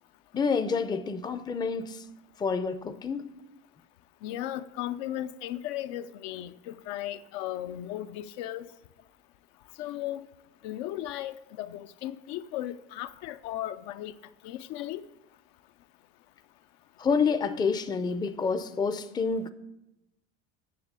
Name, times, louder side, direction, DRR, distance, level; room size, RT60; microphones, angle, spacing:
voice 1, 0.3-2.0 2.4-3.3 17.0-19.5, left 5 dB, 15° left, 0.5 m, -28 dB
voice 2, 4.2-8.7 9.8-10.2 10.6-14.1 14.4-15.0, left 13 dB, 70° left, 0.7 m, -36 dB
9.8 x 7.0 x 8.2 m
supercardioid pair, 135°, 33 cm